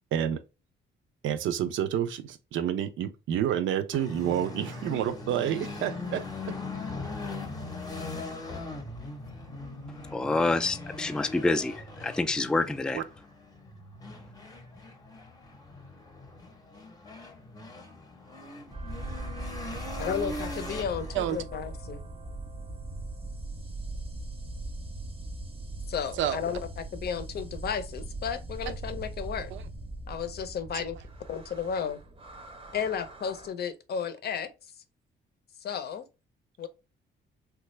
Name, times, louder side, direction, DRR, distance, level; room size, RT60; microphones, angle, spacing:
voice 1, 1.2-6.3 12.9-13.0 21.1-21.4 26.2-26.4 29.5-29.6 30.7-30.8, right 10 dB, 75° right, 0.5 m, -29 dB
sound 1, 3.9-21.4, left 2 dB, 20° left, 0.7 m, -40 dB
voice 2, 10.1-11.7 12.0-13.0, left 2 dB, 5° left, 0.3 m, -27 dB
sound 2, 18.7-33.5, right 2 dB, 25° right, 0.6 m, -40 dB
voice 3, 20.0-22.0 25.9-29.5 30.1-31.0 31.3-32.0 32.7-34.5 35.6-36.1 36.6-36.7, left 7 dB, 55° left, 0.6 m, -33 dB
3.2 x 2.3 x 3.0 m
cardioid pair, 90°, 20 cm